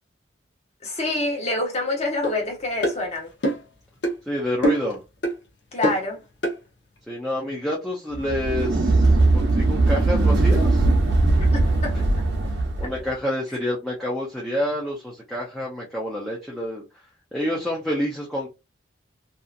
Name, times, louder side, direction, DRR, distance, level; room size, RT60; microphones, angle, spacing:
voice 1, 0.8-3.3 5.7-6.2 11.5-12.2, left 2 dB, 35° left, 1.1 m, -27 dB
sound 1, 2.2-2.4 2.8-3.0 3.4-3.7 4.0-4.2 4.6-4.9 5.2-5.4 5.8-6.1 6.4-6.6, right 1 dB, 65° left, 0.8 m, -23 dB
voice 2, 4.3-5.0 7.1-10.9 12.8-16.8 17.3-18.5, left 1 dB, ahead, 0.6 m, -28 dB
sound 2, 8.1-13.0, right 2 dB, 70° right, 0.8 m, -19 dB
2.8 x 2.4 x 2.4 m
head